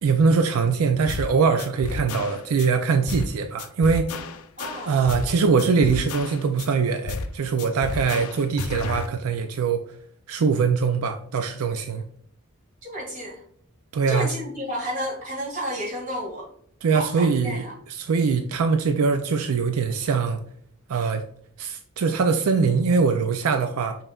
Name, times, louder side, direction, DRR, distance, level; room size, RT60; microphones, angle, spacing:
voice 1, 0.0-4.2 4.9-9.8 10.3-12.0 13.9-14.3 16.8-17.6 18.0-20.4 20.9-21.2 21.6-24.0, right 5 dB, 85° right, 0.4 m, -22 dB
sound 1, 1.1-1.3 1.6-2.7 3.1-3.3 3.6-5.3 5.6-6.7 7.1-7.3 7.6-9.1, left 4 dB, 85° left, 0.5 m, -32 dB
voice 2, 4.6-5.4 12.8-13.4 14.1-16.5 16.9-17.7, equal, 35° right, 1.8 m, -32 dB
5.5 x 3.9 x 2.3 m
head